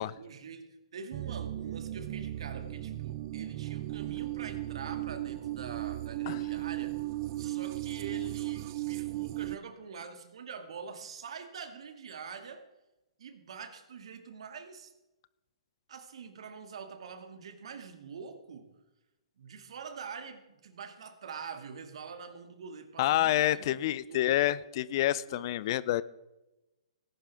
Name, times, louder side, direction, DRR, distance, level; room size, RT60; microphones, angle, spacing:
voice 1, 0.0-7.0 7.4-12.7 13.2-14.9 15.9-18.7 19.4-24.4 25.3-25.5, right 5 dB, 65° right, 7 dB, 2.2 m, -45 dB
sound 1, 1.1-9.6, right 15 dB, 40° right, 0.6 m, -36 dB
voice 2, 23.0-26.0, left 14 dB, 45° left, 19 dB, 0.6 m, -28 dB
18.5 x 11.0 x 3.6 m, 0.98 s
hypercardioid pair, 130°, 3 cm